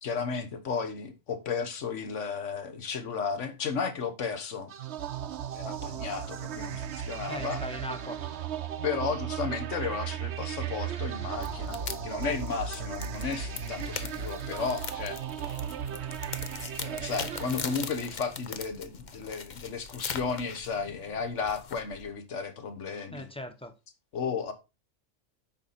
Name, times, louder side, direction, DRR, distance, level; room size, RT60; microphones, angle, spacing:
voice 1, 0.0-4.7 5.5-7.6 8.8-15.2 16.8-23.3 24.1-24.5, left 5 dB, 65° left, 1.5 m, -34 dB
sound 1, 4.7-18.4, right 8 dB, 60° right, 1.0 m, -36 dB
voice 2, 7.3-8.2 23.1-23.7, left 1 dB, 5° left, 0.7 m, -39 dB
sound 2, 11.3-22.1, left 6 dB, 45° left, 0.7 m, -41 dB
8.2 x 5.5 x 4.2 m
omnidirectional pair, 1.4 m